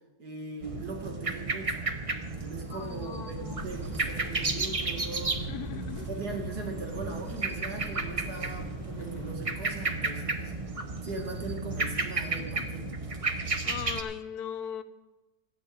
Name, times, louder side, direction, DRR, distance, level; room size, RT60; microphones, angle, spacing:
voice 1, 0.2-1.8 2.4-5.4 6.1-10.5 11.0-13.0, right 3 dB, 70° right, 1 dB, 2.5 m, -39 dB
sound 1, 0.6-14.0, right 3 dB, 30° right, 0.7 m, -33 dB
voice 2, 2.7-3.8 5.5-6.2 13.6-14.8, left 9 dB, 70° left, 10 dB, 1.3 m, -39 dB
sound 2, 3.3-9.4, left 3 dB, 30° left, 1.2 m, -45 dB
14.5 x 6.4 x 8.8 m, 1.1 s
omnidirectional pair, 1.8 m